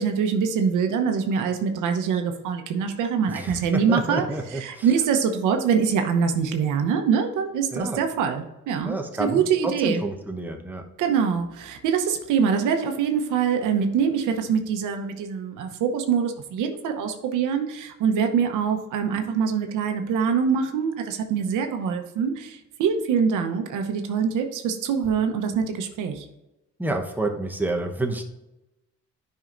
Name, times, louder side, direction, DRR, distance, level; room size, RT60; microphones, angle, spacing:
voice 1, 0.0-4.2 4.5-10.0 11.0-26.3, right 6 dB, 90° right, 5 dB, 0.9 m, -24 dB
voice 2, 3.3-4.9 7.7-8.0 8.8-10.8 26.8-28.2, right 2 dB, 5° right, 3 dB, 1.0 m, -29 dB
10.0 x 5.6 x 2.6 m, 0.95 s
cardioid pair, 90°, 30 cm